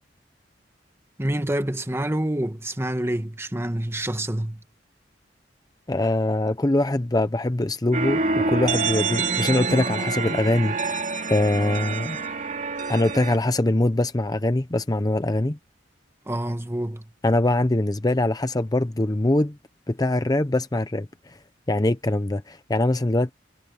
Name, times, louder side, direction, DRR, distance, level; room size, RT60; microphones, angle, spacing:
voice 1, 1.2-4.6 16.3-17.0, right 1 dB, 15° right, 1.4 m, -27 dB
voice 2, 5.9-11.0 11.3-12.2 12.9-15.6 17.2-19.6 19.9-21.4 21.7-23.3, left 1 dB, 20° left, 0.7 m, -23 dB
sound 1, 7.9-13.4, right 3 dB, 45° right, 3.2 m, -26 dB
head